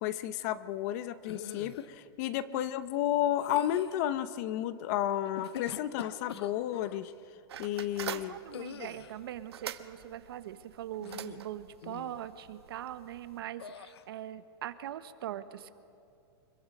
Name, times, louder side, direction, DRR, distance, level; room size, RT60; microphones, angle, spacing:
voice 1, 0.0-7.1 7.6-8.4, left 12 dB, 40° left, 14 dB, 0.7 m, -32 dB
sound 1, 1.2-1.9 3.4-4.0 5.2-7.0 8.5-9.2 11.0-11.5 11.8-12.2 13.6-14.0, left 8 dB, 85° left, 1.0 m, -44 dB
sound 2, 7.5-13.4, right 10 dB, 85° right, 1.0 m, -45 dB
voice 2, 8.3-15.7, right 11 dB, 65° right, 12 dB, 1.1 m, -41 dB
25.0 x 22.5 x 5.2 m, 2.5 s
supercardioid pair, 155°, 13 cm